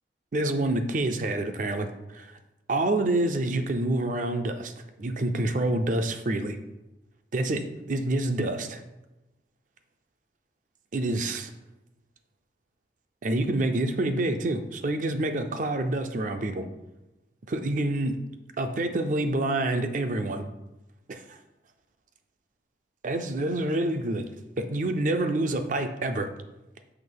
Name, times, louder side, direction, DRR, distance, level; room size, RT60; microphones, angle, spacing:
voice 1, 0.3-1.9 2.1-2.3 2.7-4.7 5.0-6.6 7.3-8.8 10.9-11.5 13.2-16.6 17.5-18.2 18.6-20.5 21.1-21.4 23.0-24.3 24.6-26.3, right 2 dB, 45° right, 7 dB, 0.5 m, -27 dB
6.0 x 2.9 x 5.4 m, 0.99 s
head